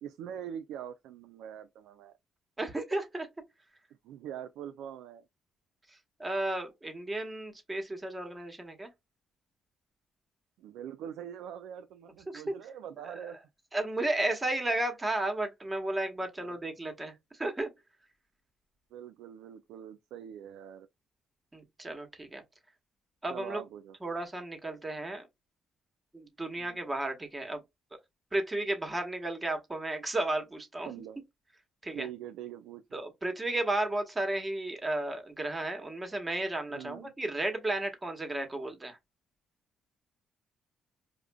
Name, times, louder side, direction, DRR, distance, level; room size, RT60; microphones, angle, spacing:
voice 1, 0.0-2.1 4.0-5.2 10.6-13.4 16.4-16.6 18.9-20.9 23.3-24.0 26.6-26.8 30.9-31.2 31.9-32.8 36.7-37.1, right 9 dB, 90° right, 0.3 m, -43 dB
voice 2, 2.6-3.3 5.9-8.9 12.3-12.5 13.0-13.1 13.7-17.7 21.5-22.4 23.2-23.6 24.0-25.3 26.1-27.6 28.3-30.9 31.8-32.1 32.9-39.0, right 2 dB, 20° right, 1.1 m, -33 dB
5.0 x 2.4 x 2.2 m
cardioid pair, 90°, 0 cm